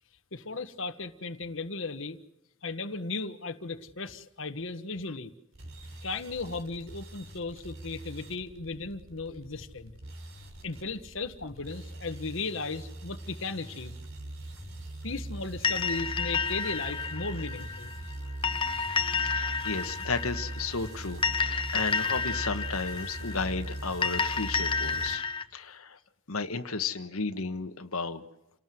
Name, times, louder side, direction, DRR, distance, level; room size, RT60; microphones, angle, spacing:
voice 1, 0.3-2.2 2.6-5.3 6.0-9.9 10.6-14.0 15.0-17.9, left 3 dB, 60° left, 7 dB, 1.4 m, -36 dB
sound 1, 5.5-25.2, right 1 dB, 65° right, 3.7 m, -41 dB
sound 2, 15.6-25.4, left 5 dB, 25° left, 0.9 m, -31 dB
voice 2, 19.2-25.2 25.5-26.0 26.3-28.2, left 4 dB, 80° left, 7 dB, 1.5 m, -33 dB
29.0 x 19.0 x 7.8 m, 0.90 s
head